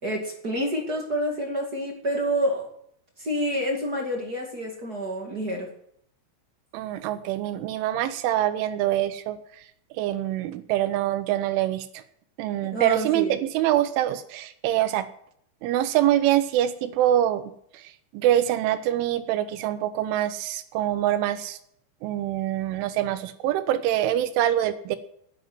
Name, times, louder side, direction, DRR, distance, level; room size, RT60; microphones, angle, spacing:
voice 1, 0.0-2.7 3.2-5.7 12.6-13.4, equal, 35° right, 0 dB, 1.5 m, -28 dB
voice 2, 6.7-9.4 10.0-11.9 12.4-15.1 15.6-17.5 18.1-21.6 22.0-25.0, right 12 dB, 90° right, 11 dB, 3.4 m, -24 dB
11.0 x 9.8 x 9.6 m, 0.69 s
omnidirectional pair, 5.4 m